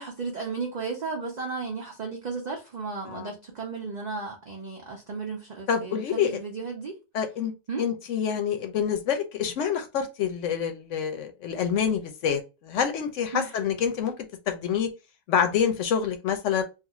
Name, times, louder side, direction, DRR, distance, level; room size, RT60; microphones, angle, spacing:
voice 1, 0.0-6.9 7.7-7.8 13.3-13.5, right 4 dB, 55° right, 0.5 m, -34 dB
voice 2, 5.7-6.4 7.1-7.5 7.8-14.1 14.5-14.9 15.3-16.6, left 7 dB, 70° left, 0.9 m, -27 dB
2.4 x 2.4 x 2.9 m
omnidirectional pair, 1.4 m